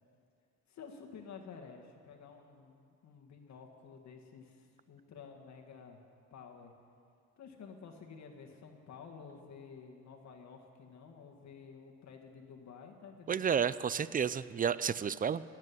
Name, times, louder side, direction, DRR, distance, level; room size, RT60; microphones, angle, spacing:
voice 1, 0.7-6.0 6.3-6.7 7.4-13.5, left 5 dB, 65° left, 3 dB, 1.7 m, -51 dB
voice 2, 13.3-15.4, right 7 dB, 30° right, 17 dB, 0.4 m, -31 dB
17.5 x 7.7 x 9.6 m, 2.4 s
cardioid pair, 90°, 30 cm